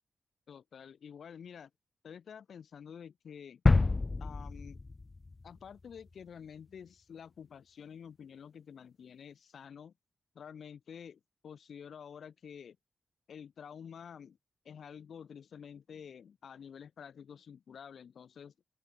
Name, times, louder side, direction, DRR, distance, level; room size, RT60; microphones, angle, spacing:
voice 1, 0.5-1.7 2.0-3.6 4.2-4.8 5.4-9.9 10.3-12.8 13.3-14.4 14.6-18.5, left 7 dB, 75° left, 5.7 m, -49 dB
sound 1, 3.7-5.6 6.0-6.1, left 3 dB, 30° left, 1.7 m, -28 dB
open air
wide cardioid pair, 115°, 0 cm